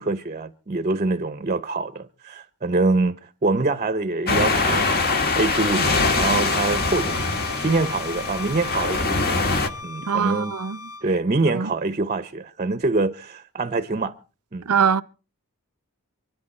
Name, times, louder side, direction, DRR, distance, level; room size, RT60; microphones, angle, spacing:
voice 1, 0.0-5.0 5.3-7.3 7.6-9.4 9.8-10.6 11.0-14.1 14.5-14.7, right 3 dB, 35° right, 0.7 m, -25 dB
sound 1, 4.3-9.7, left 3 dB, 45° left, 1.6 m, -23 dB
Bowed string instrument, 5.7-11.1, left 3 dB, 65° left, 1.2 m, -37 dB
voice 2, 10.1-10.8 11.5-11.7 14.7-15.0, right 7 dB, 80° right, 0.7 m, -22 dB
24.5 x 11.0 x 4.3 m
head